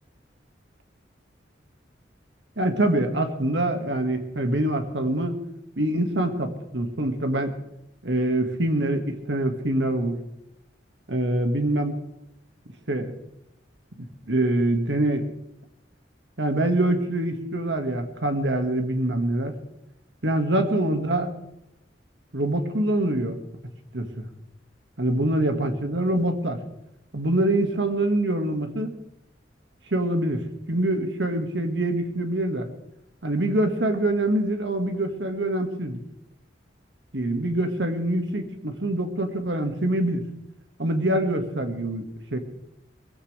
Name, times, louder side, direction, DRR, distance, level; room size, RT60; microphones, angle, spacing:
voice 1, 2.6-5.4 5.8-7.5 8.0-10.2 11.1-12.0 12.9-13.1 14.0-15.3 16.4-19.5 20.2-21.3 22.3-23.4 23.9-24.3 25.0-26.6 27.1-28.9 29.9-32.7 33.2-36.0 37.1-40.2 40.8-42.4, right 1 dB, 70° right, 6 dB, 1.8 m, -25 dB
22.5 x 15.5 x 3.3 m, 0.84 s
head